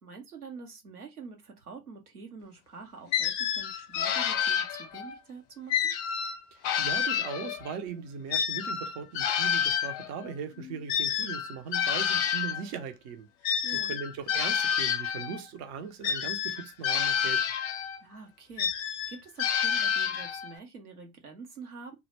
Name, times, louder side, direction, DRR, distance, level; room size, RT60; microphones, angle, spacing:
voice 1, 0.0-6.0 13.6-14.0 18.0-21.9, right 4 dB, 90° right, 0.7 m, -46 dB
sound 1, 3.1-5.2 5.7-7.8 8.3-12.6 13.4-15.4 16.0-18.0 18.6-20.6, left 8 dB, 40° left, 0.5 m, -29 dB
voice 2, 6.5-17.4, right 6 dB, 40° right, 0.5 m, -39 dB
2.1 x 2.0 x 3.1 m
figure-of-eight pair, 75°, 43 cm